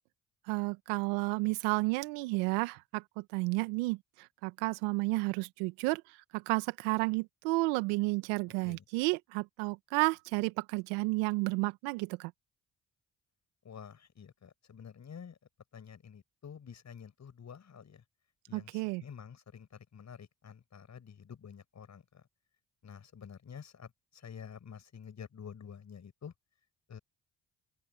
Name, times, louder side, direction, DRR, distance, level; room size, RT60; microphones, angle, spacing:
voice 1, 0.5-12.3 18.5-19.0, right 24 dB, 80° right, 1.8 m, -32 dB
voice 2, 13.6-15.4 15.7-18.0 18.5-22.2 22.8-26.3 26.9-27.0, left 7 dB, 50° left, 6.9 m, -49 dB
open air
hypercardioid pair, 45°, 35 cm